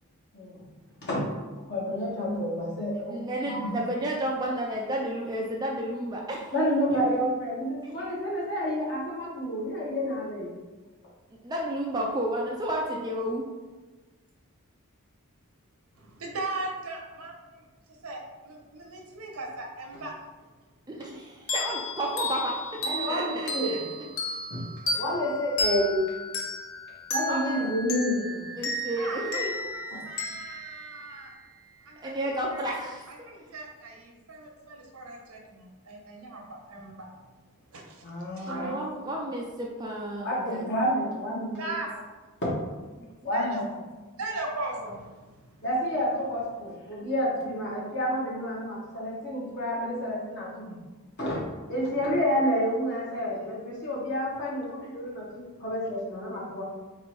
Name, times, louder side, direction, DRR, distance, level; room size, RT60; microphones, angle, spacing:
voice 1, 0.3-0.7 1.0-1.3 1.7-3.2 3.6-3.7 6.5-10.5 22.8-23.8 24.5-24.6 25.0-26.0 27.1-28.5 29.9-30.0 38.0-38.7 40.2-41.5 42.4-42.5 43.2-43.6 45.6-50.8 51.2-51.4 51.7-56.6, equal, 50° left, -5 dB, 1.4 m, -29 dB
voice 2, 3.1-6.5 7.8-8.0 11.4-13.5 20.9-22.6 23.1-23.8 27.3-27.6 28.5-29.5 32.0-33.1 38.5-40.7 43.0-43.3, right 1 dB, 20° right, -2 dB, 0.4 m, -31 dB
voice 3, 16.0-20.1 29.0-31.3 31.8-32.6 33.1-37.1 37.7-38.8 41.6-42.1 43.3-43.6 44.2-45.6, right 2 dB, 75° right, 0 dB, 0.9 m, -38 dB
sound 1, 21.5-31.8, left 1 dB, 70° left, 0.8 m, -34 dB
4.1 x 2.6 x 4.4 m, 1.3 s
head